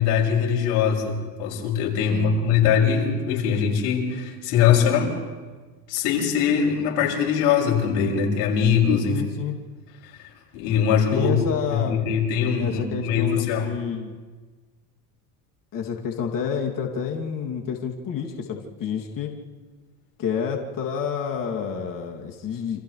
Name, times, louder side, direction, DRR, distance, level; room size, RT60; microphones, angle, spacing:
voice 1, 0.0-5.1 5.9-9.2 10.0-11.4 11.7-13.7, left 7 dB, 70° left, -1 dB, 6.7 m, -22 dB
voice 2, 2.1-2.8 9.1-9.6 11.1-12.0 12.6-14.1 15.7-19.3 20.2-22.8, left 7 dB, 45° left, 0 dB, 2.9 m, -29 dB
29.5 x 27.0 x 3.4 m, 1.4 s
supercardioid pair, 90°, 44 cm